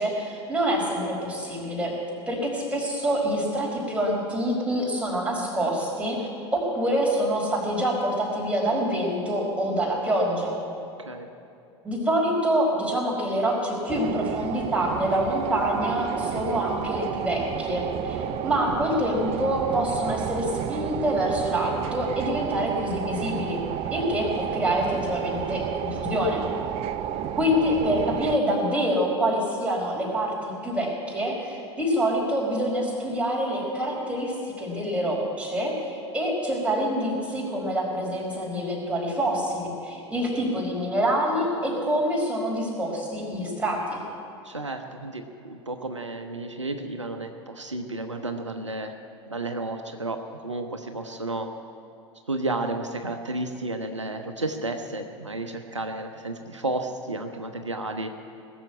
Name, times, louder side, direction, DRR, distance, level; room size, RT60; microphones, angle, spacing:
voice 1, 0.0-1.9 2.3-10.6 11.8-23.6 23.9-26.4 27.4-44.0, equal, 10° right, -3 dB, 4.7 m, -26 dB
sound 1, 13.9-28.4, right 10 dB, 40° right, 0.6 m, -31 dB
voice 2, 44.4-48.9 49.3-50.2 50.4-51.5 52.3-58.1, right 2 dB, 90° right, 6 dB, 0.8 m, -32 dB
19.0 x 7.1 x 8.7 m, 2.6 s
figure-of-eight pair, 75°, 15 cm